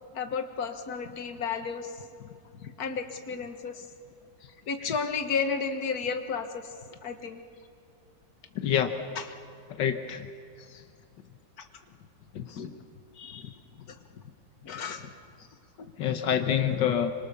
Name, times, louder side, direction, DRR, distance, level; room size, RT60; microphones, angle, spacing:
voice 1, 0.1-3.9 4.7-7.4 9.2-9.3 11.6-11.7 12.5-12.7 13.2-14.0 14.6-15.1 15.8-15.9, left 5 dB, 60° left, 7 dB, 2.0 m, -33 dB
voice 2, 8.6-8.9 9.8-10.2 12.4-12.5 16.0-17.1, left 9 dB, 85° left, 8 dB, 1.7 m, -26 dB
26.5 x 25.5 x 6.9 m, 2.4 s
omnidirectional pair, 1.9 m